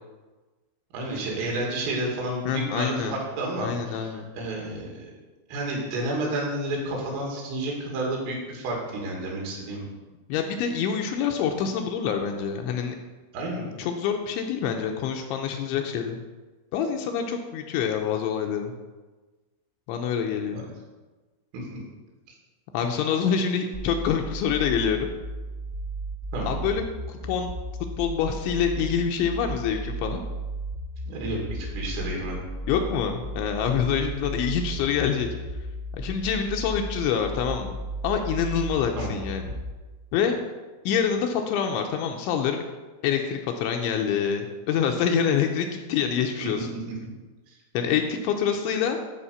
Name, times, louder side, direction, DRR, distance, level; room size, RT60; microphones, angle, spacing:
voice 1, 0.9-5.1 5.5-9.9 13.3-13.6 20.5-20.6 21.5-21.8 26.3-26.6 31.1-32.4 39.0-39.2 46.4-46.6 47.5-47.6, right 1 dB, 80° right, -2 dB, 5.1 m, -31 dB
voice 2, 2.5-3.2 3.6-4.3 10.3-13.0 13.8-16.2 16.7-18.7 19.9-20.6 22.7-25.1 26.5-26.8 27.1-27.5 28.0-30.2 32.7-35.3 35.9-37.8 38.0-39.5 40.1-40.4 40.9-42.6 43.0-46.7 47.7-49.0, left 7 dB, 80° left, 3 dB, 2.9 m, -26 dB
sound 1, 23.7-39.7, right 1 dB, 40° right, 1.1 m, -34 dB
13.0 x 5.0 x 7.0 m, 1.3 s
omnidirectional pair, 5.7 m